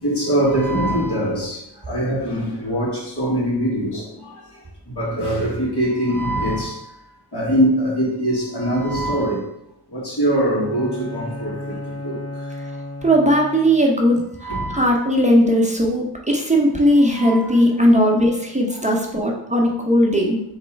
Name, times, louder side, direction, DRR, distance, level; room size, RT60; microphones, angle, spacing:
voice 1, 0.0-4.3 4.9-6.9 7.3-9.4 9.9-12.2 14.4-14.9 17.1-17.5 18.0-18.1, right 1 dB, 70° left, -5 dB, 1.7 m, -22 dB
Bowed string instrument, 10.3-14.0, left 2 dB, 40° left, 0.6 m, -34 dB
voice 2, 13.0-20.4, equal, 15° right, -1 dB, 0.7 m, -18 dB
3.6 x 3.2 x 4.3 m, 0.78 s
wide cardioid pair, 85°, 42 cm